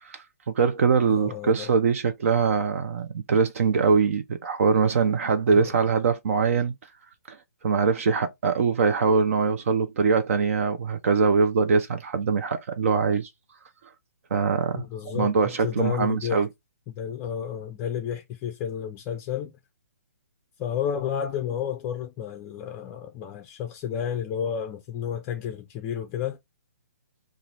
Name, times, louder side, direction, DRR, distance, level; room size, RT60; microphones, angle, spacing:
voice 1, 0.0-6.7 7.3-7.4 7.6-13.3 14.3-16.5, right 5 dB, 55° right, 0.6 m, -23 dB
voice 2, 1.1-1.7 5.5-5.7 14.7-16.4 16.9-19.5 20.6-26.4, left 8 dB, 25° left, 0.4 m, -31 dB
3.9 x 2.5 x 3.0 m
hypercardioid pair, 140°, 9 cm